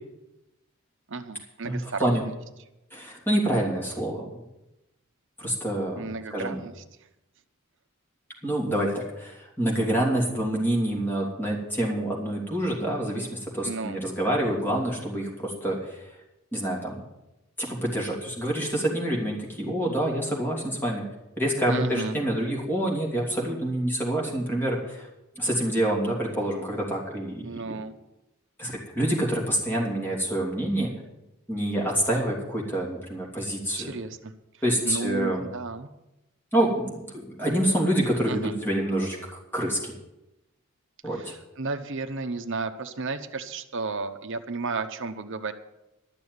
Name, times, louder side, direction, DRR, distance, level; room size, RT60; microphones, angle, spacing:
voice 1, 1.1-2.3 5.9-6.8 13.6-14.0 21.7-22.2 27.4-28.0 33.8-34.3 34.8-35.9 38.3-38.5 41.1-45.5, right 3 dB, 60° right, 8 dB, 0.9 m, -33 dB
voice 2, 1.6-2.2 2.9-4.4 5.4-6.6 8.4-16.1 16.5-17.0 17.6-21.0 21.4-25.1 25.4-27.7 28.6-30.9 31.5-33.9 34.6-35.5 36.5-39.2 39.5-39.9 41.0-41.3, right 1 dB, 10° left, -3 dB, 3.0 m, -27 dB
12.5 x 7.0 x 9.5 m, 0.94 s
head